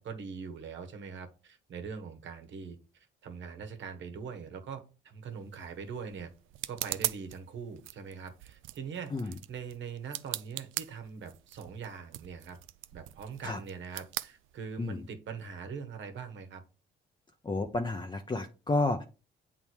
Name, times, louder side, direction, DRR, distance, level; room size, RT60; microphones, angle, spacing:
voice 1, 0.0-6.3 6.7-12.6 12.9-16.6, right 6 dB, 70° right, 6 dB, 1.5 m, -42 dB
sound 1, 5.2-15.1, right 15 dB, 85° right, 0.4 m, -41 dB
voice 2, 17.4-19.0, left 2 dB, 25° left, 4 dB, 0.9 m, -31 dB
8.4 x 3.7 x 4.7 m, 0.32 s
cardioid pair, 90°, 20 cm